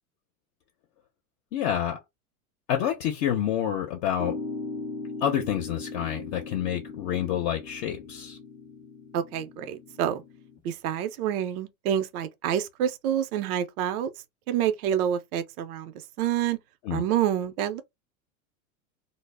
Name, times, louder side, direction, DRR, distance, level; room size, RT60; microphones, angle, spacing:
voice 1, 1.5-2.0 2.7-4.4 5.2-8.4 16.8-17.0, left 10 dB, 55° left, 0.7 m, -28 dB
sound 1, 4.2-10.6, left 3 dB, 10° left, 0.3 m, -39 dB
voice 2, 9.1-10.2 10.6-14.1 14.5-16.6 16.9-17.8, right 10 dB, 75° right, 0.6 m, -28 dB
2.0 x 2.0 x 3.3 m
supercardioid pair, 120°, 45 cm